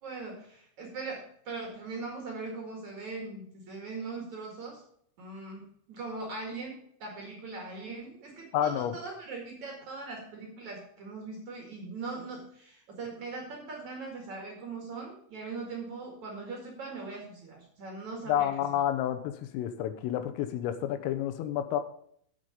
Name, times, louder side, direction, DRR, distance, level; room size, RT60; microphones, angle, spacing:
voice 1, 0.0-4.8 5.2-5.6 5.9-18.5, right 3 dB, 50° right, 0 dB, 2.4 m, -40 dB
voice 2, 8.5-8.9 18.3-21.8, left 11 dB, 90° left, 9 dB, 3.6 m, -30 dB
8.8 x 8.2 x 5.0 m, 0.65 s
omnidirectional pair, 5.7 m